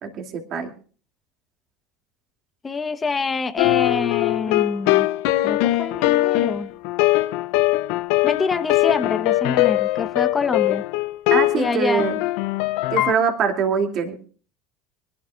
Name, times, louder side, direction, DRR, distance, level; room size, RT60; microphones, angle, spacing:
voice 1, 0.0-0.7 11.3-12.2 12.9-14.3, right 6 dB, 50° right, 4 dB, 2.5 m, -23 dB
voice 2, 2.6-5.1 5.4-6.7 8.2-10.8 11.5-12.1, left 4 dB, 25° left, 8 dB, 1.1 m, -26 dB
sound 1, 3.6-13.1, left 17 dB, 65° left, 0.5 m, -21 dB
24.0 x 12.0 x 2.4 m, 0.41 s
hypercardioid pair, 80°, 0 cm